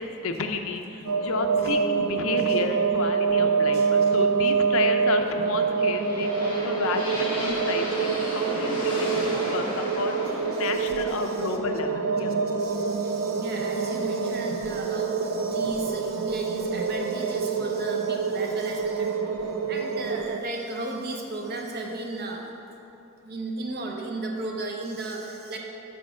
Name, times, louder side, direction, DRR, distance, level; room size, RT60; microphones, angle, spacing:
voice 1, 0.0-10.2 10.5-12.3, left 3 dB, 70° left, 5 dB, 0.5 m, -31 dB
sound 1, 1.0-20.4, right 5 dB, 85° right, 0.4 m, -26 dB
sound 2, 5.4-13.3, equal, 25° left, 1.5 m, -34 dB
voice 2, 10.5-11.6 12.5-22.4 23.2-25.6, right 2 dB, 45° right, 1 dB, 0.7 m, -35 dB
6.9 x 5.0 x 4.8 m, 2.9 s
head